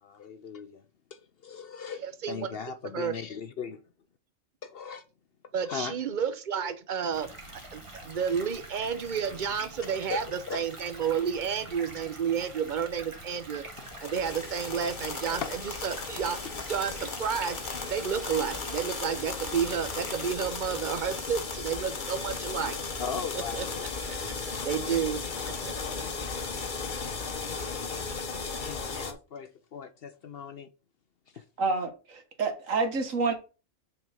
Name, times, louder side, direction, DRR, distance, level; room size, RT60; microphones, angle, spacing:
voice 1, 0.0-0.8 1.1-3.8 4.6-5.0 5.6-5.9 10.1-10.6 15.4-15.5 16.5-16.6 22.6-22.7 23.0-23.9 24.3-24.5 26.4-26.9 28.0-28.1 28.6-30.7 31.3-31.4, left 6 dB, 60° left, 0.7 m, -39 dB
voice 2, 2.0-2.5 2.9-3.1 5.5-7.3 7.7-13.6 14.0-16.4 16.7-17.6 17.9-22.8 23.3-23.6 24.1-25.2 25.6-25.7, right 7 dB, 45° right, 0.9 m, -31 dB
sound 1, 7.1-20.3, right 1 dB, 25° right, 1.3 m, -45 dB
sound 2, 13.7-29.1, left 4 dB, 40° left, 1.1 m, -36 dB
voice 3, 31.6-33.3, right 4 dB, 80° right, 1.8 m, -28 dB
6.3 x 4.5 x 5.0 m
omnidirectional pair, 1.3 m